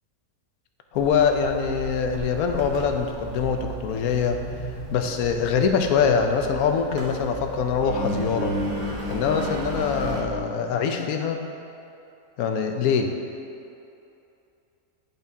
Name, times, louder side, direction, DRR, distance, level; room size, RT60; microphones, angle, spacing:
voice 1, 0.9-4.4 4.9-8.5 9.1-11.4 12.4-13.1, left 6 dB, 80° left, 5 dB, 1.1 m, -23 dB
Engine, 0.9-10.2, right 1 dB, 70° right, 1.4 m, -34 dB
10.5 x 5.2 x 2.7 m, 2.7 s
omnidirectional pair, 1.6 m